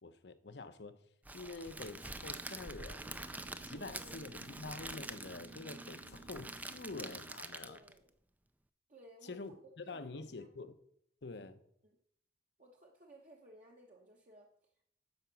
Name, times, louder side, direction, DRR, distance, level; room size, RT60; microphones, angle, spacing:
voice 1, 0.0-1.0 1.3-3.2 3.7-7.8 9.2-9.5 9.8-10.7 11.2-11.6, left 3 dB, 70° left, 0.8 m, -47 dB
Crackle, 1.3-8.0, right 2 dB, 10° right, 0.4 m, -46 dB
sound 1, 1.8-7.3, right 2 dB, 70° right, 3.0 m, -55 dB
voice 2, 3.6-4.4 7.6-8.1 8.9-9.4 9.6-10.5 11.8-12.0 12.6-14.8, right 1 dB, 45° right, 1.2 m, -59 dB
12.0 x 5.1 x 6.9 m
head